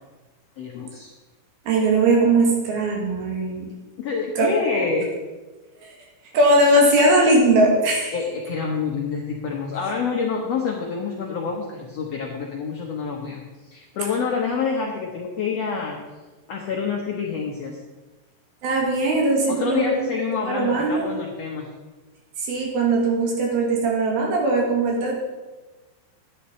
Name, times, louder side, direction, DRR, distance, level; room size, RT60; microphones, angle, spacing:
voice 1, 0.6-1.1 4.0-5.1 8.1-16.0 16.5-17.8 19.5-21.7, left 5 dB, 85° left, -1 dB, 1.4 m, -27 dB
voice 2, 1.7-3.7 4.4-4.9 5.8-5.9 6.3-8.2 18.6-20.1 20.4-21.1 22.4-25.2, right 2 dB, 75° right, -1 dB, 3.6 m, -20 dB
10.5 x 8.7 x 4.3 m, 1.2 s
omnidirectional pair, 4.4 m